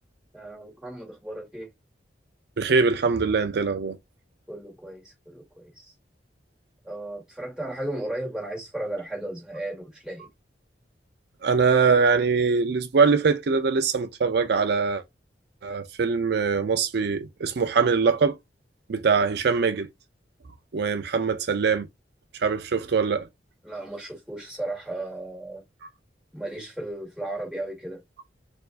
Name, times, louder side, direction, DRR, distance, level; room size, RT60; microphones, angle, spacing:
voice 1, 0.3-1.7 4.5-5.9 6.8-10.3 23.6-25.6 26.3-28.0, right 1 dB, 5° right, 2.1 m, -35 dB
voice 2, 2.6-4.0 11.4-15.0 15.6-18.4 18.9-19.9 20.7-21.9 22.3-23.3, right 5 dB, 65° right, 0.5 m, -22 dB
4.4 x 2.7 x 2.4 m
head